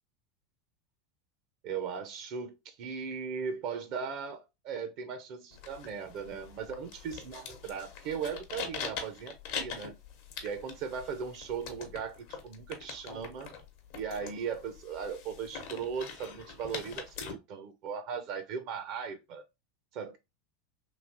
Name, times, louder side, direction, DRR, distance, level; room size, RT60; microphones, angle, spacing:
voice 1, 1.6-10.0 10.4-13.5 13.9-19.4 19.9-20.2, right 6 dB, 55° right, 0.5 m, -38 dB
sound 1, 5.5-17.3, left 6 dB, 60° left, 0.8 m, -43 dB
3.1 x 2.8 x 2.5 m
hypercardioid pair, 85°, 0 cm